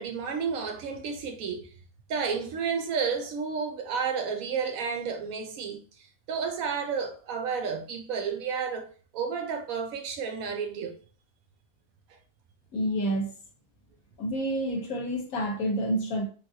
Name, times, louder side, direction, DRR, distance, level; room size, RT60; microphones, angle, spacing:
voice 1, 0.0-1.7 2.1-5.8 6.3-8.9 9.1-10.9, right 6 dB, 70° right, 1.0 m, -31 dB
voice 2, 12.7-13.3 14.2-16.3, equal, 70° left, 1.3 m, -28 dB
3.9 x 2.5 x 2.6 m
omnidirectional pair, 1.6 m